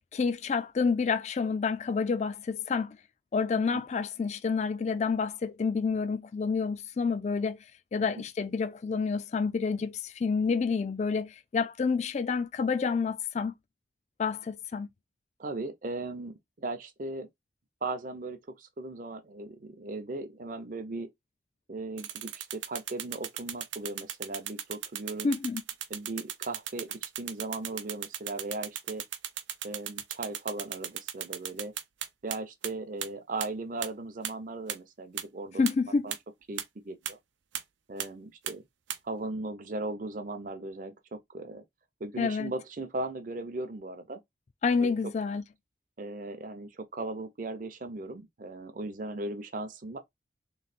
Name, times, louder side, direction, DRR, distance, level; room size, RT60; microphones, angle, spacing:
voice 1, 0.1-3.0 3.3-7.6 7.9-13.5 14.2-14.9 25.2-25.6 35.6-36.1 42.2-42.5 44.6-45.4, left 5 dB, 40° left, 0.3 m, -29 dB
voice 2, 15.4-17.3 17.8-21.1 21.7-25.3 25.9-29.0 29.6-31.7 32.2-35.6 36.0-36.1 36.5-37.2 37.9-38.6 39.0-41.6 42.0-44.2 44.8-44.9 46.0-50.0, right 2 dB, 45° right, 0.6 m, -37 dB
sound 1, 22.0-32.4 32.6-32.7 33.0-33.1 33.4-33.5 33.8-33.9 34.2-34.3 34.7-34.8 35.2-35.3 35.7-35.8 36.1-36.2 36.6-36.7 37.1-37.2 37.5-37.6 38.0-38.1 38.5-38.6 38.9-39.0, right 10 dB, 90° right, 0.6 m, -35 dB
3.2 x 3.1 x 4.1 m
head